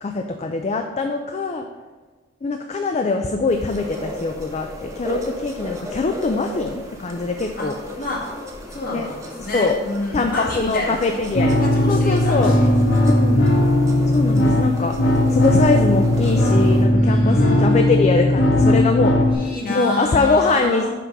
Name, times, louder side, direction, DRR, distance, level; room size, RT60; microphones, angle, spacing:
voice 1, 0.0-1.7 2.4-7.7 8.9-9.1 9.5-9.8 10.1-11.5 11.9-12.5 13.0-13.4 14.1-14.9 15.3-19.1 19.7-20.9, left 3 dB, 35° left, 4 dB, 0.4 m, -22 dB
sound 1, 3.5-16.9, left 1 dB, 15° right, 1.0 m, -35 dB
voice 2, 8.7-11.1 11.7-12.7 16.9-17.8 19.3-20.9, left 1 dB, 50° left, -4 dB, 2.0 m, -28 dB
sound 2, 11.3-19.3, left 1 dB, 85° left, 1.3 m, -17 dB
5.9 x 5.4 x 4.6 m, 1.3 s
head